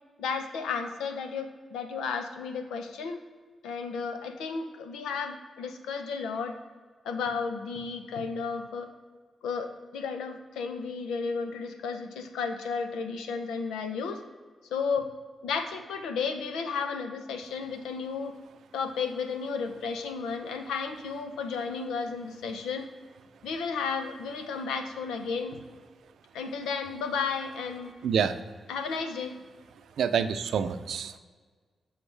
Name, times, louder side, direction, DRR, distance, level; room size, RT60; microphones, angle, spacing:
voice 1, 0.2-3.2 3.6-6.6 7.0-8.9 9.4-14.2 14.7-15.1 15.4-18.4 18.7-22.9 23.4-25.6 26.3-27.9 28.7-29.3, left 5 dB, 85° left, 8 dB, 0.7 m, -33 dB
voice 2, 28.0-28.4 30.0-31.2, right 7 dB, 75° right, 10 dB, 0.5 m, -27 dB
7.2 x 7.0 x 3.4 m, 1.5 s
supercardioid pair, 45°, 0 cm